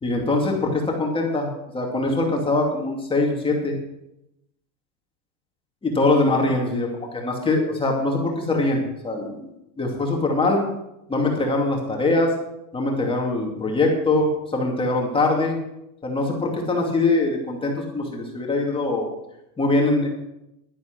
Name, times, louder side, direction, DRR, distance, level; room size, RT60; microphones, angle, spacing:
voice 1, 0.0-3.8 5.8-9.4 9.8-10.6 11.1-12.3 12.7-15.5 16.0-19.1 19.6-20.1, left 2 dB, 10° left, 0 dB, 2.5 m, -22 dB
11.5 x 10.5 x 6.1 m, 0.86 s
supercardioid pair, 150°, 49 cm